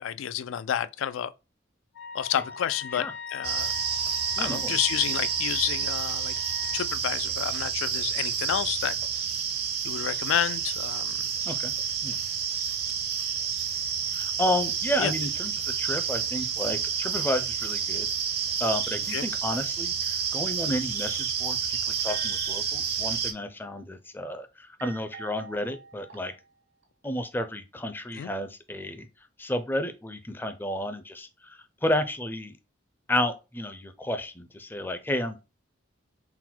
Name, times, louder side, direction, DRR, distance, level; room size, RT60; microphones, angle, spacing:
voice 1, 0.0-1.3 2.1-3.7 4.4-6.3 6.7-9.0 9.8-11.3 15.0-15.1 19.1-19.3 28.1-28.3, left 10 dB, 85° left, 0.3 m, -30 dB
Wind instrument woodwind instrument, 1.9-6.9, left 6 dB, 70° left, 1.0 m, -40 dB
sound 1, 3.4-23.3, right 7 dB, 50° right, 0.6 m, -29 dB
voice 2, 4.4-4.8 11.5-11.7 12.0-12.2 14.1-18.1 18.6-21.6 21.9-26.3 27.0-29.1 29.4-32.5 33.1-35.4, left 1 dB, 10° left, 0.4 m, -31 dB
sound 2, 21.1-23.0 24.8-26.6 26.8-26.9, right 5 dB, 85° right, 1.3 m, -48 dB
3.9 x 2.1 x 4.3 m
head